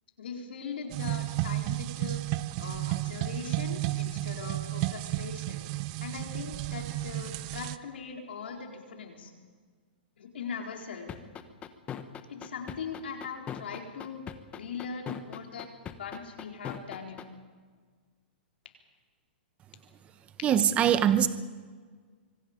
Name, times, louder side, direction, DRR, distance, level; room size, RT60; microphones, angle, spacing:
voice 1, 0.2-2.2 2.6-5.7 6.0-9.3 10.2-11.1 12.3-14.2 14.5-17.2, left 5 dB, 80° left, 1 dB, 4.0 m, -40 dB
sound 1, 0.9-7.8, right 17 dB, 40° right, 0.6 m, -32 dB
sound 2, 11.1-17.2, left 9 dB, 20° left, 1.2 m, -39 dB
voice 2, 20.4-21.3, right 9 dB, 20° right, 12 dB, 1.0 m, -22 dB
25.0 x 24.5 x 5.2 m, 1.6 s
hypercardioid pair, 145°, 6 cm